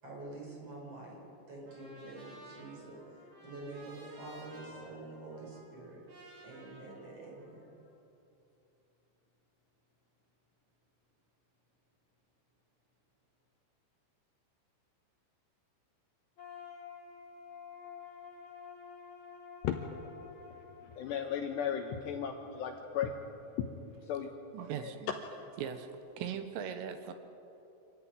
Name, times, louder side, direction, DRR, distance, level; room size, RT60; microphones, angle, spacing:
voice 1, 0.0-1.2 1.5-6.0 6.4-7.7, right 2 dB, 30° right, -2 dB, 6.5 m, -47 dB
Trumpet, 1.7-7.9, right 1 dB, 55° right, 7.6 m, -55 dB
sound 1, 16.4-22.3, left 6 dB, 25° left, 4.5 m, -50 dB
voice 2, 20.8-23.1 23.6-23.7 24.0-24.3 24.8-25.2, left 8 dB, 75° left, 4 dB, 2.7 m, -35 dB
voice 3, 24.5-25.1 25.6-25.9 26.2-27.1, right 8 dB, 80° right, 8 dB, 3.7 m, -39 dB
26.5 x 14.5 x 9.7 m, 2.9 s
omnidirectional pair, 5.8 m